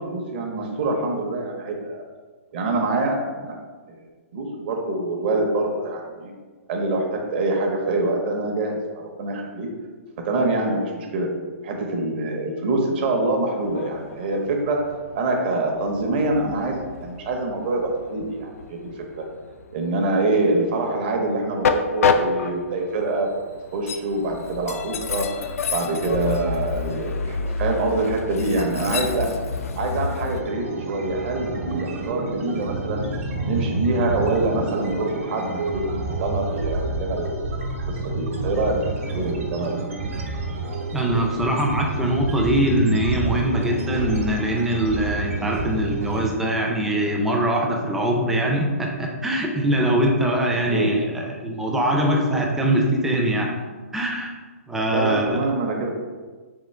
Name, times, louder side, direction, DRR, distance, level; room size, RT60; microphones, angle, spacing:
voice 1, 0.0-2.0 2.5-3.5 3.9-4.0 4.3-6.3 6.7-9.7 10.2-11.3 11.6-14.9 15.1-19.2 19.7-23.3 23.7-29.3 29.7-33.0 33.4-37.6 37.9-39.7 50.7-51.0 54.9-55.9, right 2 dB, 40° right, 2 dB, 0.7 m, -25 dB
Train, 13.6-30.4, left 5 dB, 75° left, 0.4 m, -29 dB
sound 1, 30.3-46.3, right 2 dB, 65° right, 0.9 m, -29 dB
voice 2, 40.9-53.5 53.9-54.3 54.7-55.5, right 1 dB, 5° right, 0 dB, 0.4 m, -22 dB
3.7 x 2.9 x 4.3 m, 1.4 s
hypercardioid pair, 155°, 8 cm